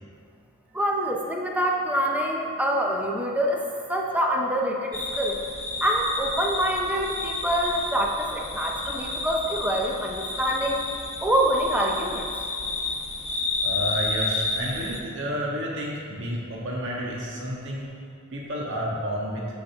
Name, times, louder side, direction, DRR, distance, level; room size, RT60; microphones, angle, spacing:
voice 1, 0.7-3.6 3.9-5.4 5.8-10.8 11.2-12.3, equal, 5° right, 0 dB, 0.7 m, -25 dB
sound 1, 4.9-15.0, left 3 dB, 30° left, 1.0 m, -31 dB
voice 2, 13.6-17.9 18.3-19.5, equal, 60° right, -4 dB, 1.6 m, -30 dB
13.0 x 5.2 x 3.5 m, 2.3 s
head